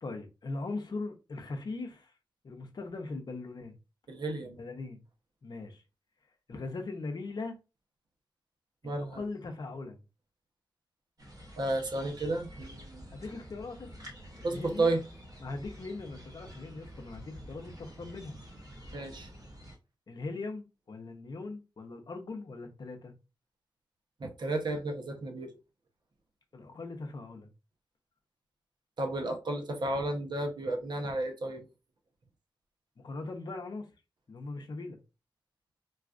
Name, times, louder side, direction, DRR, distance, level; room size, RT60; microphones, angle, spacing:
voice 1, 0.0-2.1 2.4-3.7 4.4-5.0 5.4-5.8 6.5-7.5 8.8-10.0 13.1-14.1 14.4-14.9 15.4-18.4 20.1-23.1 26.5-27.5 33.0-33.9 34.3-35.0, left 3 dB, 60° left, 0.7 m, -40 dB
voice 2, 4.1-4.6 8.8-9.2 11.6-13.0 14.4-15.0 18.9-19.3 24.2-25.5 29.0-31.6, right 2 dB, 65° right, 0.8 m, -32 dB
sound 1, 11.2-19.8, equal, 50° right, 1.2 m, -49 dB
4.0 x 2.4 x 2.5 m
wide cardioid pair, 90°, 8 cm